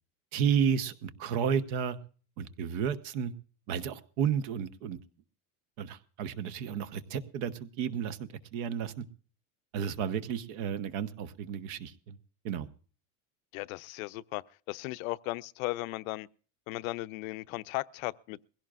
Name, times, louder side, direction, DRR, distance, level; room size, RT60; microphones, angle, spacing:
voice 1, 0.3-2.0 2.4-3.3 3.7-5.0 5.8-9.0 9.7-12.2 12.4-12.7, right 8 dB, 60° right, 1.2 m, -32 dB
voice 2, 13.5-14.4 14.7-16.3 16.7-18.4, left 20 dB, 75° left, 0.6 m, -36 dB
21.5 x 16.5 x 2.5 m
supercardioid pair, 150°, 41 cm